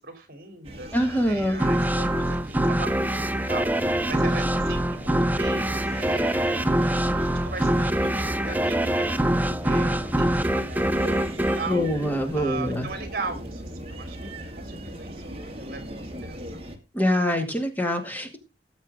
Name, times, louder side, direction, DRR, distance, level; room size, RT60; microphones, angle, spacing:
voice 1, 0.0-6.6 7.2-9.3 9.6-11.8 12.3-16.6, right 4 dB, 55° right, 8 dB, 3.3 m, -39 dB
sound 1, 0.6-16.8, equal, 35° right, 2.2 m, -38 dB
voice 2, 0.9-1.6 11.7-12.9 16.9-18.4, equal, 10° left, 5 dB, 2.1 m, -24 dB
sound 2, 1.6-12.8, right 1 dB, 10° right, 0.6 m, -24 dB
18.5 x 7.3 x 3.7 m, 0.26 s
head